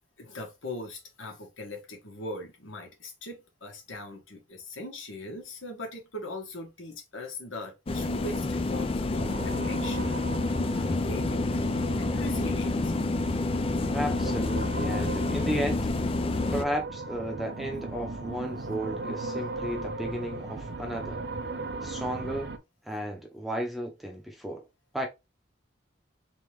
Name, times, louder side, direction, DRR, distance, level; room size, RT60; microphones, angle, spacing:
voice 1, 0.2-10.3 10.7-12.9, left 2 dB, 85° left, 1.5 m, -40 dB
sound 1, 7.9-16.6, left 3 dB, 30° left, 0.3 m, -28 dB
sound 2, 9.2-22.6, right 3 dB, 55° right, 0.6 m, -37 dB
voice 2, 13.9-15.9 16.5-21.2 21.8-22.5 22.9-24.6 24.9-25.1, equal, ahead, 0.7 m, -34 dB
3.8 x 3.7 x 3.2 m
head